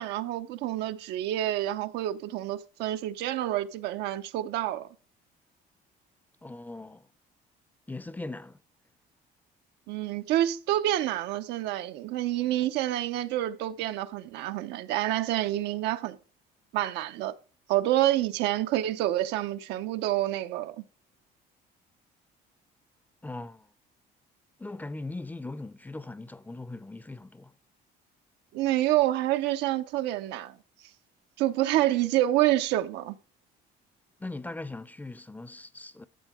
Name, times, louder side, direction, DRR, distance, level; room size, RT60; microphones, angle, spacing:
voice 1, 0.0-4.9 9.9-16.2 16.7-17.3 17.7-20.8 28.5-30.6 31.4-33.2, right 14 dB, 90° right, 0.8 m, -28 dB
voice 2, 6.4-7.1 7.9-8.6 23.2-23.7 24.6-27.5 34.2-36.0, left 2 dB, 10° left, 0.5 m, -40 dB
13.5 x 7.2 x 3.7 m
cardioid pair, 110°, 17 cm